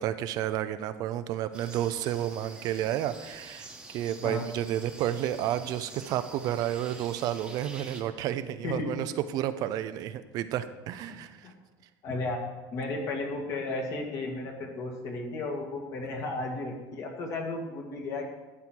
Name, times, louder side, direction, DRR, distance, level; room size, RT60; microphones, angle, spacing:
voice 1, 0.0-11.5, right 11 dB, 50° right, 11 dB, 0.5 m, -31 dB
sound 1, 1.5-8.0, right 2 dB, 10° right, 1.2 m, -47 dB
voice 2, 11.1-11.5 12.0-12.4 12.7-18.2, left 2 dB, 40° left, 1 dB, 2.1 m, -34 dB
12.0 x 8.9 x 4.6 m, 1.2 s
cardioid pair, 170°, 8 cm